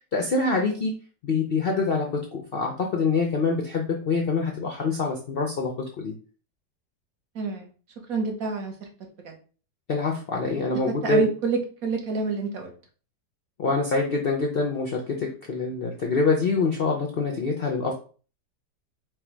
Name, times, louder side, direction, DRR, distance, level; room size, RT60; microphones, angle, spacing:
voice 1, 0.1-0.9 1.2-6.1 9.9-11.2 13.6-17.9, left 4 dB, 75° left, 1 dB, 0.5 m, -25 dB
voice 2, 7.3-7.7 8.1-8.7 9.2-9.3 11.0-12.7, right 4 dB, 60° right, 2 dB, 1.3 m, -27 dB
4.5 x 2.2 x 4.4 m, 0.38 s
omnidirectional pair, 1.8 m